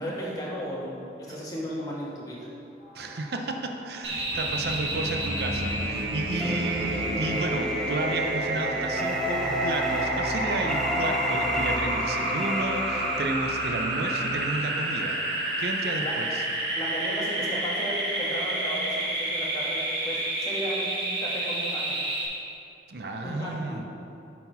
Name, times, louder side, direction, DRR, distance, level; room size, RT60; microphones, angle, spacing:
voice 1, 0.0-2.5 6.4-6.6 16.0-16.2 16.7-20.9 21.2-22.0 23.2-23.8, equal, 20° left, -5 dB, 1.4 m, -35 dB
sound 1, 2.8-14.5, equal, 55° left, 1.8 m, -41 dB
voice 2, 2.9-15.2 15.6-16.4 22.9-23.8, right 2 dB, 65° right, 4 dB, 0.6 m, -32 dB
sound 2, 4.0-22.2, right 1 dB, 80° right, 1.5 m, -29 dB
sound 3, 6.4-13.3, equal, 5° left, 0.3 m, -32 dB
8.3 x 4.3 x 5.5 m, 2.7 s
head